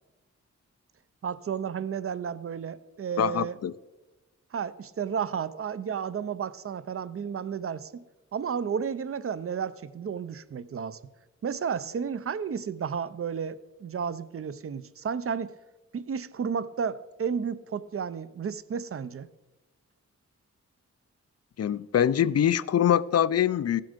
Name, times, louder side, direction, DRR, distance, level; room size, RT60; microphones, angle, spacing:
voice 1, 1.2-3.6 4.5-8.0 8.3-11.0 11.4-15.5 15.9-19.3, right 7 dB, 50° right, 0.5 m, -32 dB
voice 2, 3.2-3.7 21.6-23.8, left 9 dB, 55° left, 0.4 m, -24 dB
15.5 x 7.6 x 5.1 m
wide cardioid pair, 140°, 30 cm